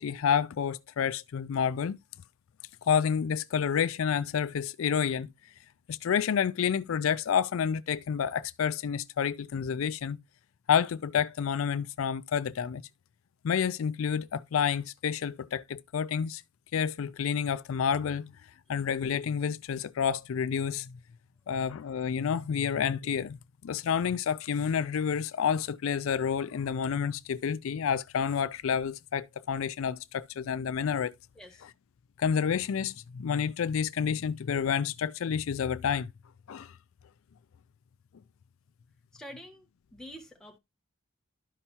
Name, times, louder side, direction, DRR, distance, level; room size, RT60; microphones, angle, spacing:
voice 1, 0.0-2.0 2.9-5.3 5.9-10.2 10.7-12.8 13.4-16.4 16.7-18.3 18.7-20.9 21.5-31.1 32.2-36.1 36.5-36.7, left 7 dB, 75° left, 0.4 m, -29 dB
voice 2, 31.4-31.7 39.1-40.6, equal, 5° left, 1.7 m, -47 dB
12.5 x 5.5 x 2.8 m
head